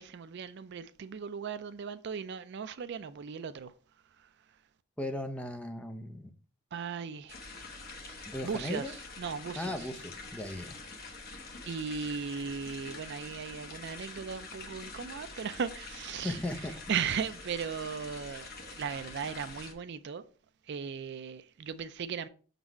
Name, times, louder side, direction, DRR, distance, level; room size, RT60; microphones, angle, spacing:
voice 1, 0.0-3.7 6.7-7.5 8.1-9.9 11.7-16.4 16.9-20.2 20.7-22.3, right 6 dB, 55° right, 0.4 m, -37 dB
voice 2, 5.0-6.3 8.3-8.9 9.6-10.8 16.2-16.7, left 1 dB, 5° left, 0.5 m, -37 dB
sound 1, 7.3-19.7, left 3 dB, 45° left, 1.0 m, -46 dB
6.1 x 4.0 x 4.4 m
head